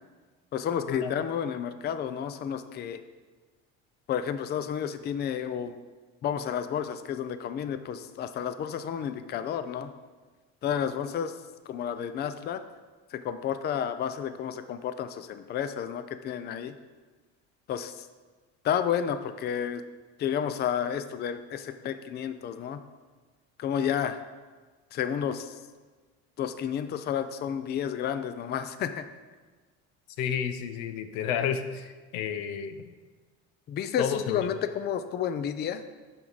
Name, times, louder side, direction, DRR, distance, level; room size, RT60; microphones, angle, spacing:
voice 1, 0.5-3.0 4.1-5.7 6.2-9.9 10.6-11.3 11.7-12.6 13.1-16.7 17.7-18.1 18.6-19.8 20.2-22.8 23.6-24.2 24.9-25.5 26.4-29.1 33.7-35.8, left 8 dB, 35° left, 11 dB, 0.5 m, -31 dB
voice 2, 30.2-33.0 34.0-34.5, left 8 dB, 90° left, 9 dB, 0.7 m, -31 dB
9.0 x 6.2 x 4.0 m, 1.4 s
cardioid pair, 125°, 29 cm